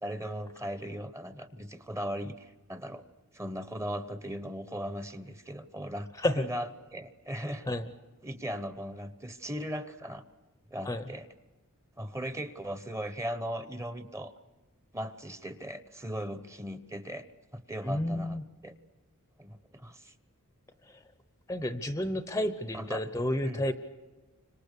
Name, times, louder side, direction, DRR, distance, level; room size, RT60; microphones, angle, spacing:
voice 1, 0.0-3.0 3.3-6.1 6.4-7.7 8.2-10.2 10.7-11.3 12.0-14.3 14.9-17.3 17.5-18.7 19.4-20.1 22.7-23.0 23.4-23.6, equal, 15° right, 11 dB, 1.0 m, -38 dB
voice 2, 17.8-18.4 20.9-21.0 21.5-23.7, left 1 dB, 15° left, 10 dB, 0.7 m, -31 dB
30.0 x 26.0 x 6.8 m, 1.2 s
head